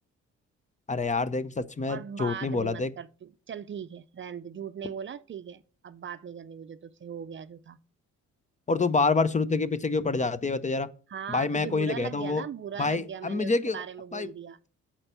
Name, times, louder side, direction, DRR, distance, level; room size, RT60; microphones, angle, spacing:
voice 1, 0.9-2.9 8.7-10.9 11.3-12.4 12.8-13.8 14.1-14.3, left 3 dB, 25° left, 0.6 m, -27 dB
voice 2, 1.9-7.8 11.1-14.6, right 8 dB, 40° right, 0.6 m, -39 dB
8.7 x 4.5 x 6.8 m
cardioid pair, 90°, 30 cm